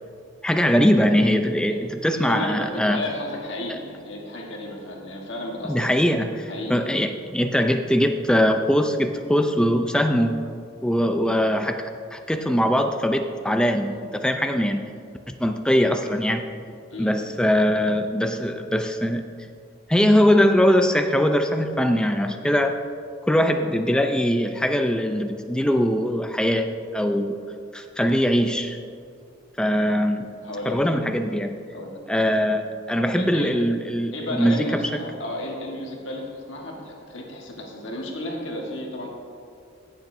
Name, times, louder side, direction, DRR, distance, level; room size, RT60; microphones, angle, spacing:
voice 1, 0.4-3.0 3.7-3.8 5.7-6.3 6.7-10.4 10.8-14.9 15.3-16.5 17.0-19.2 19.9-22.7 23.2-27.4 27.7-28.8 29.6-30.3 30.7-31.5 32.1-34.8, equal, 5° left, 6 dB, 0.4 m, -21 dB
voice 2, 2.2-6.0 6.5-6.7 16.9-17.1 29.7-31.0 31.7-32.0 33.2-33.6 34.1-39.1, left 1 dB, 60° left, -1 dB, 1.4 m, -33 dB
16.5 x 7.3 x 2.6 m, 2.4 s
head